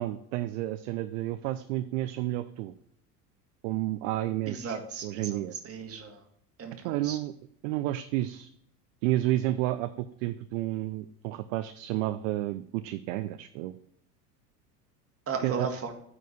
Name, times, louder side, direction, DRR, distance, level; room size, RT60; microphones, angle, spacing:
voice 1, 0.0-2.7 3.6-5.5 6.8-7.3 7.6-8.5 9.0-13.8 15.4-15.7, right 15 dB, 50° right, 12 dB, 0.7 m, -31 dB
voice 2, 4.5-6.3 6.6-7.2 15.3-15.9, right 5 dB, 30° right, 4 dB, 2.2 m, -36 dB
9.2 x 5.0 x 7.7 m, 0.71 s
figure-of-eight pair, 80°, 48 cm